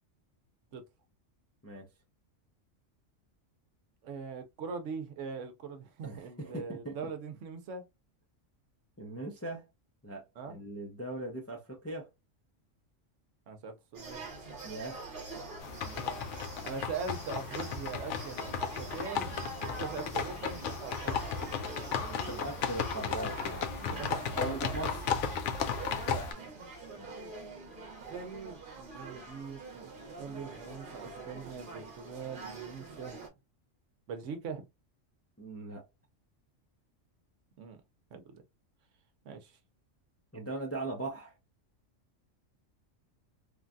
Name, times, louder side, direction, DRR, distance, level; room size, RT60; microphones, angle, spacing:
voice 1, 4.0-7.8 10.4-10.6 13.5-14.2 15.8-16.2 16.6-22.4 23.9-24.7 26.0-26.5 28.8-33.3 34.1-34.6 37.6-37.8 38.1-38.4 39.2-39.6, right 5 dB, 70° right, 1.0 m, -42 dB
voice 2, 6.0-7.0 9.0-9.6 10.0-12.1 14.6-15.1 21.9-24.1 24.4-25.0 27.0-27.2 35.4-35.8 40.3-41.3, right 2 dB, 20° left, 0.4 m, -40 dB
sound 1, 13.9-33.3, right 3 dB, 45° right, 1.0 m, -45 dB
sound 2, 15.6-26.3, left 7 dB, 70° left, 0.9 m, -35 dB
3.2 x 2.3 x 2.5 m
omnidirectional pair, 1.4 m